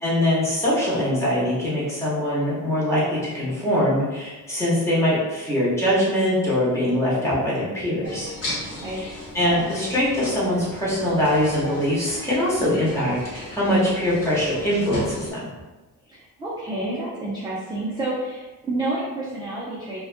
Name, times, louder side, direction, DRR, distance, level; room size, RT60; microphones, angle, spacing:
voice 1, 0.0-8.3 9.0-9.1 9.3-15.5, left 1 dB, 10° left, -9 dB, 0.9 m, -22 dB
sound 1, 8.0-15.3, equal, 40° left, 0.9 m, -35 dB
voice 2, 16.1-20.0, right 2 dB, 15° right, -7 dB, 0.3 m, -29 dB
2.4 x 2.2 x 2.4 m, 1.2 s
cardioid pair, 140°, 36 cm